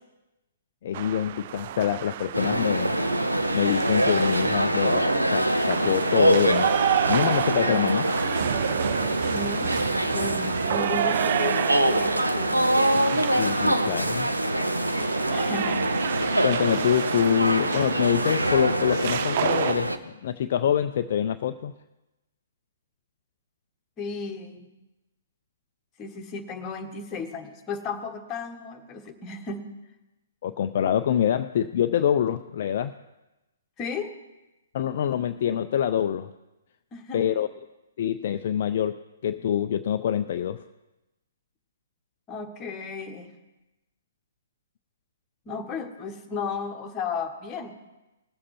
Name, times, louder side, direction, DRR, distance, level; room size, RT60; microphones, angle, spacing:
voice 1, 0.8-3.0 3.5-6.7 7.1-8.0 13.1-14.3 16.4-21.7 30.4-32.9 34.7-36.3 37.1-37.5 38.0-40.6, left 9 dB, 45° left, 9 dB, 0.4 m, -25 dB
sound 1, 0.9-19.7, right 12 dB, 40° right, 0.3 m, -31 dB
sound 2, 2.3-20.0, right 1 dB, 85° right, 0.8 m, -25 dB
voice 2, 9.3-9.8 10.0-12.7 15.3-15.9 24.0-24.7 26.0-29.7 33.8-34.2 34.8-35.3 36.9-37.2 42.3-43.3 45.4-47.8, left 4 dB, 20° left, 5 dB, 1.4 m, -34 dB
20.0 x 7.3 x 4.4 m, 1.0 s
figure-of-eight pair, 120°, 0 cm